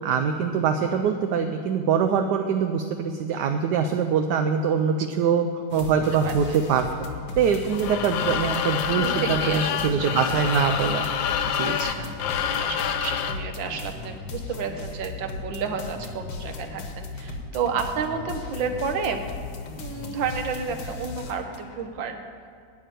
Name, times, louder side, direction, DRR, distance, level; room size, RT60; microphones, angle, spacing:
voice 1, 0.0-7.1 7.3-11.0 11.5-11.8, right 6 dB, 70° right, 5 dB, 1.2 m, -23 dB
sound 1, 5.7-21.8, left 3 dB, 65° left, 1.7 m, -37 dB
voice 2, 6.2-6.6 9.0-10.1 11.6-19.2 19.8-22.2, right 5 dB, 90° right, 6 dB, 1.7 m, -31 dB
sound 2, 7.7-13.5, left 8 dB, 85° left, 1.4 m, -27 dB
11.0 x 6.6 x 9.2 m, 2.4 s
omnidirectional pair, 2.0 m